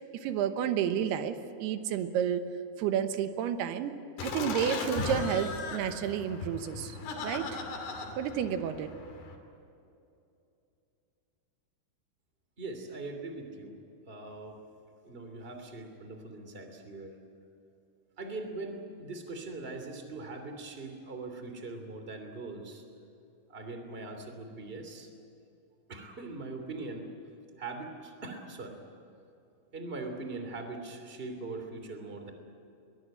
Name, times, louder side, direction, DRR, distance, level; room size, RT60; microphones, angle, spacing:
voice 1, 0.2-2.4 2.8-3.9 4.2-6.9 7.2-7.6 8.2-8.9, right 9 dB, 85° right, 8 dB, 3.2 m, -31 dB
Laughter, 4.2-9.4, left 3 dB, 85° left, 4.8 m, -37 dB
voice 2, 12.6-13.8 14.1-14.6 15.0-17.2 18.2-22.8 23.5-25.1 25.9-27.0 27.6-28.8 29.7-32.3, right 3 dB, 15° right, 5 dB, 2.4 m, -41 dB
22.5 x 22.0 x 9.0 m, 2.7 s
omnidirectional pair, 4.5 m